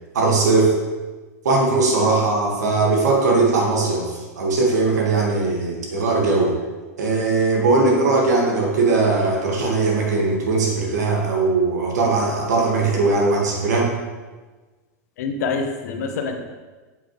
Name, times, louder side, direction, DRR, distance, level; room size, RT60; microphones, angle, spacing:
voice 1, 0.1-0.7 1.4-6.6 7.0-13.9, right 3 dB, 90° right, 0 dB, 1.5 m, -19 dB
voice 2, 15.2-16.4, left 4 dB, 75° left, 4 dB, 0.9 m, -25 dB
7.4 x 5.6 x 3.0 m, 1.3 s
hypercardioid pair, 120°, 9 cm